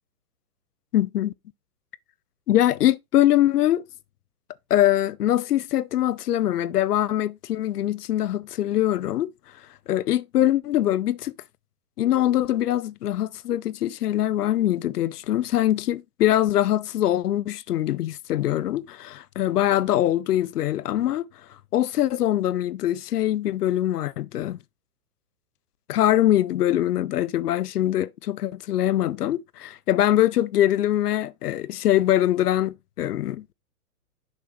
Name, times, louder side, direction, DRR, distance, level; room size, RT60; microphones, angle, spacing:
voice 1, 0.9-1.3 2.5-3.8 4.7-9.3 9.9-11.3 12.0-21.3 21.7-24.6 25.9-33.5, left 13 dB, 85° left, 0.6 m, -23 dB
6.6 x 6.0 x 3.4 m
hypercardioid pair, 150°, 45 cm